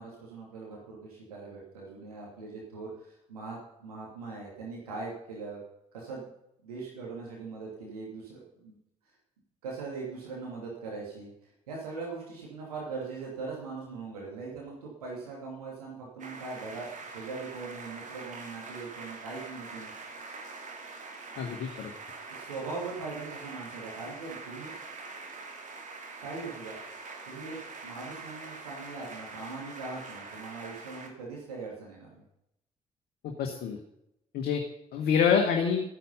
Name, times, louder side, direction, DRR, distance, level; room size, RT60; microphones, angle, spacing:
voice 1, 0.0-5.6 5.9-6.2 6.6-8.7 9.6-19.9 22.3-24.7 26.2-26.8 27.3-27.6 27.8-32.2, right 4 dB, 80° right, -3 dB, 2.7 m, -41 dB
sound 1, 16.2-31.1, right 3 dB, 40° right, 2.5 m, -44 dB
voice 2, 21.4-21.9 33.2-33.8 34.3-34.6 34.9-35.8, left 7 dB, 55° left, 3 dB, 1.5 m, -26 dB
13.5 x 10.0 x 5.6 m, 0.81 s
figure-of-eight pair, 45°, 19 cm